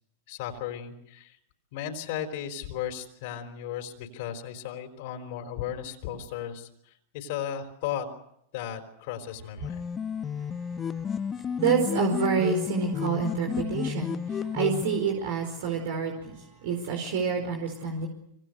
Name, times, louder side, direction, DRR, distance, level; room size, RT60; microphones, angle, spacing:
voice 1, 0.3-1.4 1.7-8.1 8.5-9.9, left 10 dB, 60° left, 5 dB, 4.6 m, -35 dB
sound 1, 9.6-15.0, left 7 dB, 25° left, 1.0 m, -32 dB
voice 2, 10.4-18.1, right 6 dB, 65° right, 3 dB, 4.8 m, -29 dB
26.5 x 24.5 x 6.7 m, 0.76 s
hypercardioid pair, 105°, 0 cm